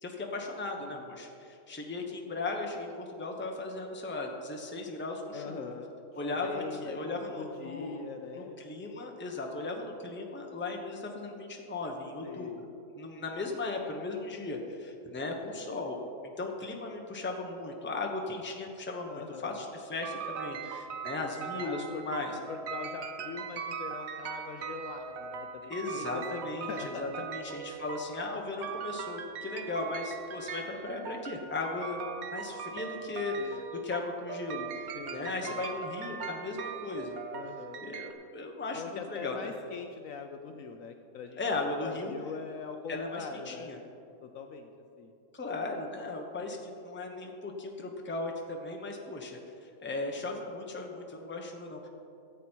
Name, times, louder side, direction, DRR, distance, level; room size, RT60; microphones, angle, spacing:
voice 1, 0.0-5.7 6.2-8.0 8.3-12.5 12.9-16.0 16.4-22.3 25.7-32.0 32.3-34.7 35.1-37.2 37.8-39.5 41.4-42.1 42.9-43.8 45.3-51.9, left 3 dB, 10° left, 1 dB, 0.8 m, -37 dB
voice 2, 5.3-8.6 12.2-12.6 19.1-19.7 21.5-22.0 22.5-27.3 33.4-33.6 34.9-35.6 37.3-37.8 38.7-41.4 41.7-43.8 44.2-44.7 45.0-45.1, left 5 dB, 65° left, 5 dB, 0.9 m, -42 dB
sound 1, 20.0-38.1, right 6 dB, 55° right, 0.8 m, -40 dB
14.0 x 8.2 x 4.5 m, 2.6 s
omnidirectional pair, 1.7 m